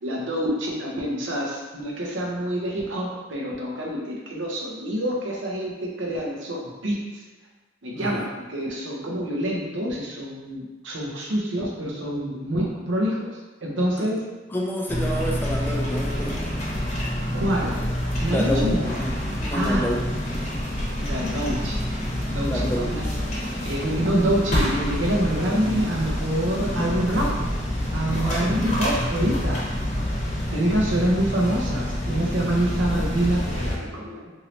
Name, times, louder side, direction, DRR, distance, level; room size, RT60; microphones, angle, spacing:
voice 1, 0.0-7.0 7.8-13.3 13.6-14.2 17.3-17.9 18.2-18.8 19.5-20.2 21.0-21.8 22.3-23.0 23.6-27.3 27.9-29.6 30.5-34.3, right 1 dB, 75° right, -3 dB, 0.7 m, -26 dB
voice 2, 7.9-8.2 14.0-14.1 14.5-16.5 18.3-20.0 20.3-20.6 22.4-22.9 28.2-28.6, equal, 10° left, -1 dB, 0.3 m, -29 dB
Supermarket Ambience, 14.9-33.8, equal, 40° left, 0.8 m, -27 dB
3.0 x 2.7 x 2.8 m, 1.2 s
head